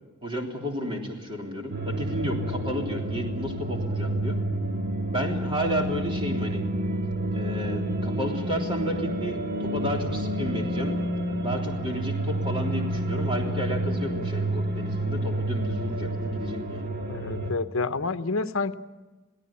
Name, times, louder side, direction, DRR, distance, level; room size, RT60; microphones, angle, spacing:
voice 1, 0.2-4.4 5.1-6.6 7.3-10.9 11.4-16.9, equal, 25° right, 1 dB, 3.4 m, -32 dB
sound 1, 1.7-17.5, right 1 dB, 45° right, 1.7 m, -29 dB
voice 2, 17.1-18.7, left 3 dB, 65° left, 11 dB, 1.0 m, -28 dB
22.5 x 17.5 x 8.7 m, 1.2 s
head